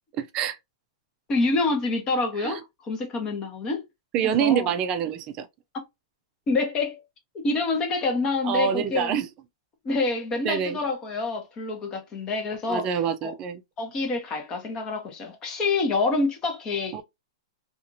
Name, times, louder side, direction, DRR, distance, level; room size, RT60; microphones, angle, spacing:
voice 1, 0.2-0.6 2.4-2.6 4.1-5.5 8.4-9.3 10.4-10.8 12.7-13.6 16.9-17.0, right 8 dB, 30° right, 0.5 m, -26 dB
voice 2, 1.3-3.8 4.4-4.7 6.5-7.0 7.3-9.1 9.8-12.9 13.2-13.3 13.8-17.0, left 3 dB, 20° left, 0.9 m, -27 dB
2.8 x 2.5 x 2.6 m
hypercardioid pair, 155°, 3 cm